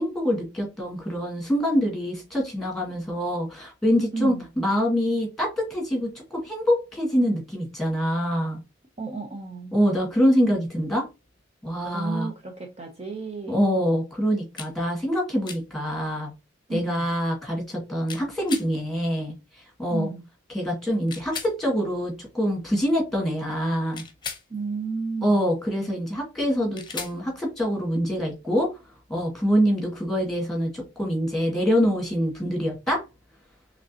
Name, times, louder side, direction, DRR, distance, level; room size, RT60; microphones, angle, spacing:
voice 1, 0.0-8.6 9.7-11.1 11.6-12.3 13.5-16.3 16.7-19.3 19.8-20.1 20.5-24.0 25.2-28.7 29.1-33.0, equal, ahead, 2.0 m, -25 dB
voice 2, 4.1-4.4 9.0-9.7 11.8-13.6 16.7-17.1 19.9-20.2 24.5-25.5, right 4 dB, 35° right, 0.7 m, -33 dB
sound 1, 14.6-14.7 15.5-15.6 18.1-18.7 21.1-21.5 23.9-24.5 26.7-27.2, left 6 dB, 25° left, 0.8 m, -36 dB
5.1 x 3.2 x 2.8 m
head